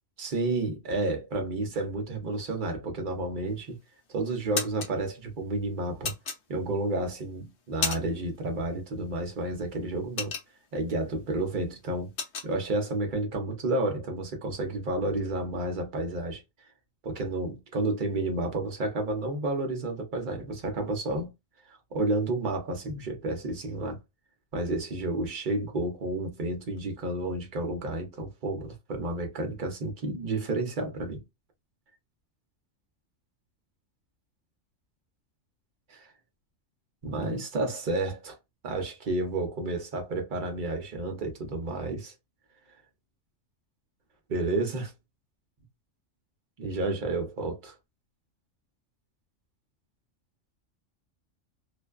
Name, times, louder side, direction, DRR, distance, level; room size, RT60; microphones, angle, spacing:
voice 1, 0.2-3.8 4.1-6.1 6.5-10.4 10.7-12.1 12.4-16.4 17.0-21.3 21.7-24.0 24.5-31.2 35.9-36.1 37.0-38.4 38.6-42.1 44.3-44.9 46.6-47.8, right 2 dB, 45° right, 0.8 m, -31 dB
sound 1, 3.5-3.9 4.3-4.9 6.0-6.9 7.3-8.3 8.6-8.8 9.2-10.9 11.3-11.5 11.7-12.5, left 5 dB, 60° left, 0.9 m, -33 dB
2.5 x 2.2 x 2.3 m
omnidirectional pair, 1.3 m